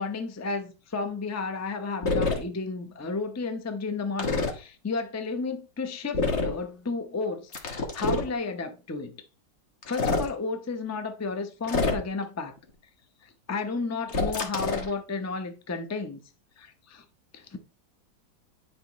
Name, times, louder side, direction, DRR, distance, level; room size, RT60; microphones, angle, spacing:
voice 1, 0.0-9.2 9.9-12.5 13.2-16.2 16.6-17.0 17.3-17.6, left 4 dB, 25° left, 0.4 m, -32 dB
sound 1, 2.0-2.4 4.2-4.5 6.1-6.6 7.5-8.3 9.8-10.3 11.6-12.2 14.1-14.9, left 3 dB, 45° left, 1.3 m, -26 dB
9.7 x 5.2 x 3.0 m
omnidirectional pair, 1.9 m